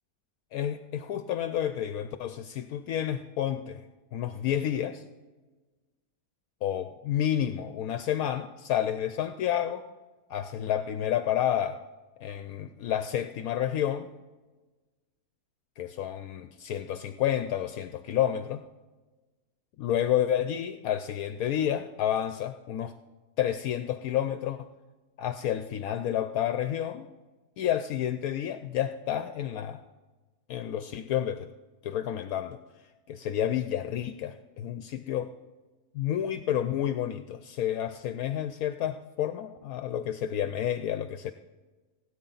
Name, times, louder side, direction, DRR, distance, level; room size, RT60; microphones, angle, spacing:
voice 1, 0.5-3.9 4.1-5.0 6.6-9.8 10.3-11.8 12.2-14.1 15.8-18.6 19.8-22.9 23.4-24.7 25.2-27.1 27.6-29.8 30.5-31.5 31.8-32.6 33.1-35.3 35.9-41.3, left 10 dB, 75° left, 10 dB, 1.0 m, -30 dB
17.5 x 9.3 x 3.9 m, 1.2 s
omnidirectional pair, 1.6 m